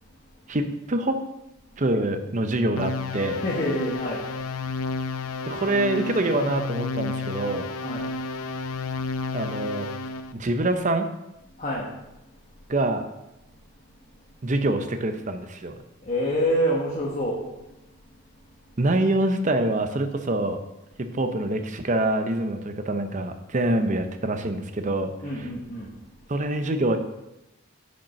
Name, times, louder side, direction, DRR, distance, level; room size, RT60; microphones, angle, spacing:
voice 1, 0.5-1.2 1.8-3.4 5.5-7.7 9.3-9.9 10.3-11.1 12.7-13.1 14.4-15.8 18.8-20.6 21.0-25.5 26.3-27.0, right 1 dB, 35° right, 8 dB, 0.6 m, -25 dB
sound 1, 2.8-10.3, left 3 dB, 80° left, 0.5 m, -31 dB
voice 2, 3.4-4.3 7.8-8.1 10.3-10.4 11.5-12.2 13.5-13.6 16.0-17.4 18.1-18.2 25.2-25.9, equal, 35° left, -4 dB, 1.3 m, -28 dB
7.2 x 5.3 x 5.8 m, 0.95 s
head